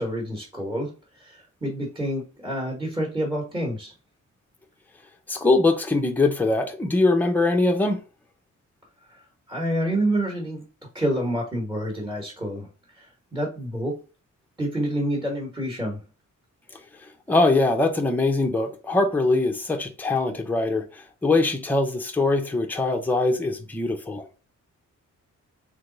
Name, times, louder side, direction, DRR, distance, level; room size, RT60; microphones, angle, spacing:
voice 1, 0.0-3.9 9.1-9.2 9.5-10.6 10.9-12.7 12.9-14.0 14.6-16.0, right 1 dB, 15° right, 1.2 m, -28 dB
voice 2, 5.3-8.0 17.3-24.3, left 2 dB, 5° left, 0.6 m, -22 dB
3.9 x 3.3 x 3.8 m
wide cardioid pair, 160°, 31 cm